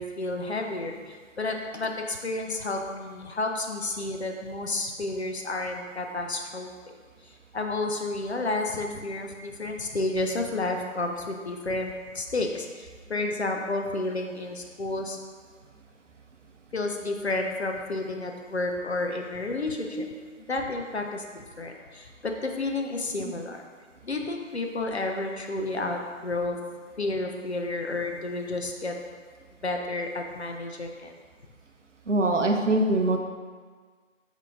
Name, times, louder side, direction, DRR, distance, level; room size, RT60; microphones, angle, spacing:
voice 1, 0.0-6.7 7.5-15.2 16.7-20.1 20.4-23.6 24.0-26.6 27.0-29.0 29.6-31.1, left 2 dB, 55° left, 3 dB, 0.5 m, -31 dB
voice 2, 32.1-33.2, right 2 dB, 65° right, 3 dB, 0.6 m, -23 dB
3.6 x 3.6 x 3.5 m, 1.5 s
figure-of-eight pair, 155°, 40 cm